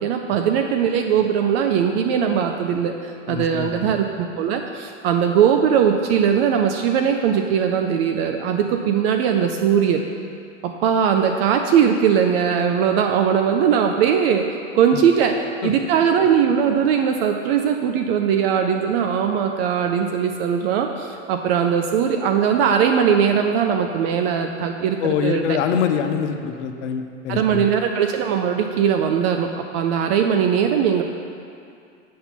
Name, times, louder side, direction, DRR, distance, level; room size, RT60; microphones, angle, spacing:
voice 1, 0.0-10.0 10.6-14.5 14.7-25.6 27.3-31.0, right 7 dB, 50° right, 5 dB, 0.5 m, -20 dB
voice 2, 3.3-3.9 14.9-15.0 15.6-15.7 25.0-27.7, left 8 dB, 65° left, 7 dB, 0.7 m, -24 dB
8.4 x 4.2 x 5.8 m, 2.4 s
hypercardioid pair, 95°, 38 cm